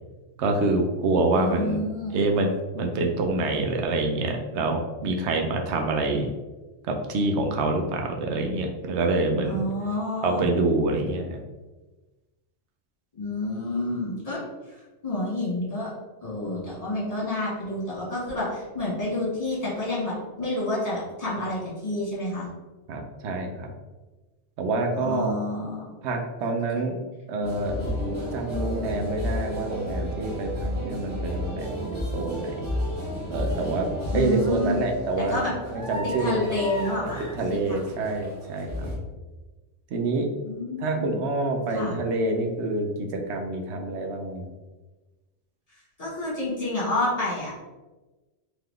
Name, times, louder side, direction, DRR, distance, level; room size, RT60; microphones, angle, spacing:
voice 1, 0.4-1.8 2.1-6.3 6.9-9.6 10.2-11.4 22.9-23.7 24.6-25.4 26.0-27.0 27.3-32.6 33.3-33.9 34.1-35.4 35.7-36.6 37.0-38.9 39.9-40.3 40.8-44.5, right 2 dB, 70° right, 3 dB, 0.9 m, -26 dB
voice 2, 1.3-2.2 9.5-10.4 13.1-14.4 15.0-15.9 16.2-22.5 24.9-25.9 34.1-34.9 35.3-35.5 36.2-37.2 37.5-37.8 40.4-41.2 41.7-41.9 46.0-47.5, left 1 dB, 30° left, -7 dB, 1.5 m, -29 dB
sound 1, 27.4-39.0, left 1 dB, 15° right, 1.4 m, -32 dB
3.9 x 2.9 x 3.2 m, 1.2 s
omnidirectional pair, 1.2 m